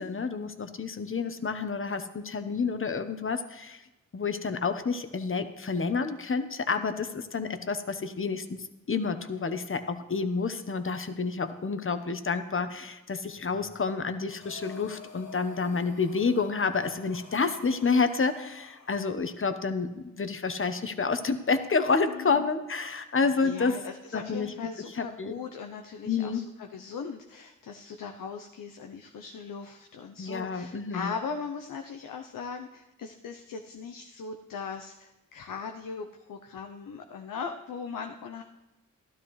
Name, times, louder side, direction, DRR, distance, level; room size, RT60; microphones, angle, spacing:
voice 1, 0.0-3.8 4.1-23.8 24.1-24.5 24.9-25.4 26.1-26.5 30.2-31.1, left 4 dB, 40° left, 9 dB, 1.1 m, -29 dB
Breathing, 14.3-19.2, left 4 dB, 55° left, 1.7 m, -50 dB
voice 2, 22.1-22.5 23.4-38.4, left 5 dB, 75° left, 5 dB, 0.8 m, -39 dB
13.0 x 12.0 x 3.2 m, 0.99 s
supercardioid pair, 40°, 33 cm